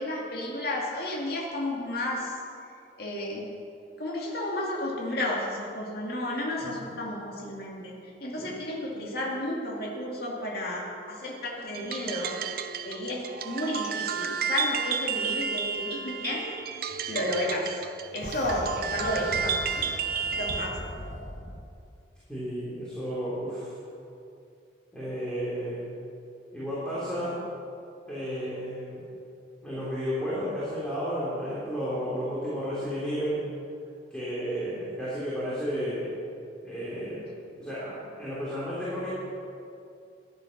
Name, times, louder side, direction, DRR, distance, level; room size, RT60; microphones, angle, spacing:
voice 1, 0.0-2.3 3.0-3.5 4.0-7.9 8.2-12.3 12.8-16.5 17.1-17.8 18.1-19.9 20.3-20.8, left 1 dB, 60° left, -3 dB, 2.3 m, -32 dB
voice 2, 6.6-6.9 8.4-8.5 22.3-23.7 24.9-25.9 26.5-27.4 28.1-29.0 29.6-33.4 34.1-36.1 36.6-37.2 37.6-39.1, equal, 5° left, -10 dB, 3.4 m, -32 dB
sound 1, 11.7-20.8, right 6 dB, 55° right, 0.6 m, -32 dB
sound 2, 18.2-21.6, left 1 dB, 45° left, 1.2 m, -39 dB
14.0 x 11.0 x 5.9 m, 2.6 s
head